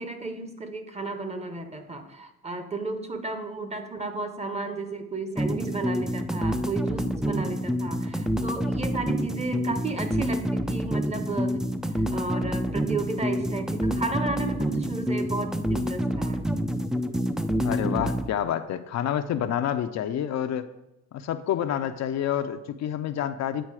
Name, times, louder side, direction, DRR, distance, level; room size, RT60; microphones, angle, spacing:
voice 1, 0.0-11.6 11.9-16.5, right 3 dB, 20° right, 8 dB, 0.9 m, -33 dB
sound 1, 5.4-18.3, equal, ahead, 0.4 m, -27 dB
voice 2, 17.6-20.7 21.1-23.6, left 10 dB, 65° left, 9 dB, 0.5 m, -28 dB
8.9 x 4.0 x 4.8 m, 0.89 s
cardioid pair, 90°, 30 cm